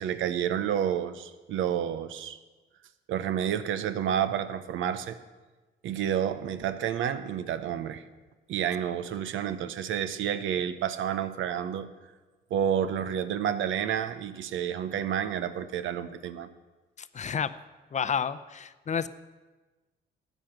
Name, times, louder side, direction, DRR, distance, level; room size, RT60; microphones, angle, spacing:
voice 1, 0.0-2.4 3.1-5.2 5.8-8.0 8.5-11.9 12.5-16.5, right 9 dB, 80° right, 13 dB, 0.8 m, -30 dB
voice 2, 17.0-17.5 17.9-19.1, left 7 dB, 35° left, 13 dB, 0.6 m, -30 dB
13.0 x 9.1 x 5.9 m, 1.2 s
cardioid pair, 90°, 20 cm